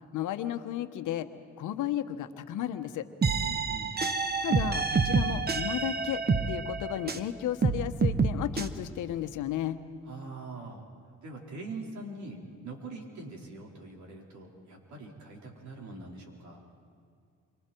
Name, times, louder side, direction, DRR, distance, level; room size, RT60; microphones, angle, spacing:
voice 1, 0.1-1.3 1.6-3.0 4.4-6.2 6.5-9.8, left 11 dB, 80° left, 9 dB, 1.2 m, -33 dB
sound 1, 3.2-7.3 7.6-8.7, right 4 dB, 30° right, 1.2 m, -28 dB
voice 2, 3.4-4.0 10.1-10.8 11.2-16.6, right 3 dB, 70° right, -1 dB, 4.9 m, -43 dB
28.5 x 25.5 x 4.6 m, 2.3 s
cardioid pair, 90°, 30 cm